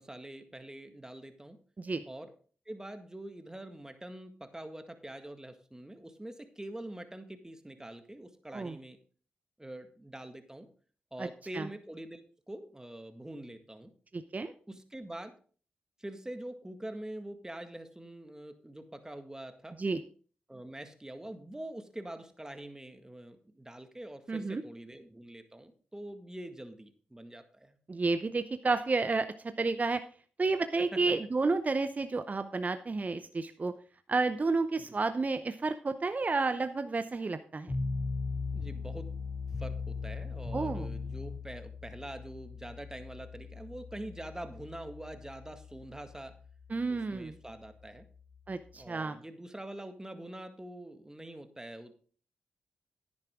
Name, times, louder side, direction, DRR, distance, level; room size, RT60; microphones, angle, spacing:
voice 1, 0.0-1.6 2.1-2.3 2.7-9.0 9.6-10.7 11.1-12.2 12.5-13.9 14.7-15.4 16.0-19.8 20.5-27.8 30.8-31.0 34.9-35.0 38.5-39.1 39.6-46.4 46.9-48.1 48.7-51.9, right 1 dB, 15° right, 8 dB, 1.8 m, -45 dB
voice 2, 14.1-14.5 19.8-20.0 24.3-24.6 27.9-29.3 29.6-30.0 30.4-33.7 34.1-37.7 40.5-40.9 46.7-47.3 48.5-49.2, right 3 dB, 40° right, 10 dB, 0.7 m, -31 dB
sound 1, 37.7-48.8, left 4 dB, 25° left, 3.7 m, -39 dB
10.5 x 9.7 x 3.7 m, 0.42 s
supercardioid pair, 40°, 4 cm